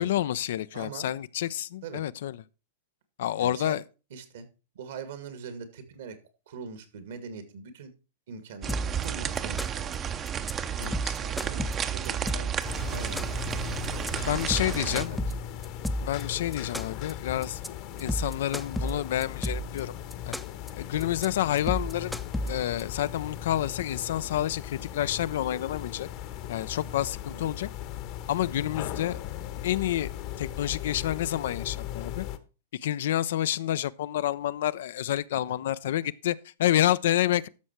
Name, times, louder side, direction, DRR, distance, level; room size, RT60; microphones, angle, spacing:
voice 1, 0.0-2.4 3.2-3.8 10.8-11.2 14.3-15.2 16.0-17.6 18.0-19.9 20.2-20.3 20.8-22.1 22.5-26.1 26.5-27.7 28.3-29.2 29.6-30.1 30.4-32.3 32.8-37.5, left 12 dB, 65° left, 0.5 m, -28 dB
voice 2, 0.7-1.1 1.8-2.1 3.4-3.8 4.1-4.5 4.7-6.2 6.5-7.9 8.3-9.8 11.2-15.2 18.0-18.2 27.3-27.5, right 6 dB, 65° right, 2.1 m, -43 dB
sound 1, 8.6-15.1, right 8 dB, 25° right, 0.8 m, -32 dB
sound 2, 8.7-9.1 9.4-9.9 10.3-10.5 10.8-12.6 12.9-13.5 13.8-14.1 14.4-16.2 16.5-17.1 17.4-17.7 18.0-19.8 20.1-20.7 21.0-21.3 21.6-22.8, equal, ahead, 0.7 m, -32 dB
sound 3, 12.6-32.4, left 11 dB, 45° left, 1.1 m, -38 dB
12.5 x 6.3 x 4.5 m
hypercardioid pair, 110°, 0 cm